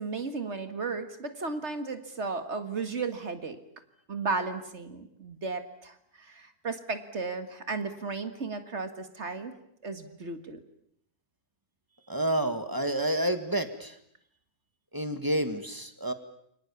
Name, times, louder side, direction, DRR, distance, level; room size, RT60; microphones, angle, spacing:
voice 1, 0.0-3.6 4.1-9.6 9.8-10.6, right 4 dB, 50° right, 9 dB, 2.1 m, -34 dB
voice 2, 12.1-14.0 14.9-16.1, right 1 dB, 15° right, 8 dB, 1.8 m, -29 dB
29.0 x 24.5 x 7.1 m, 0.72 s
omnidirectional pair, 1.6 m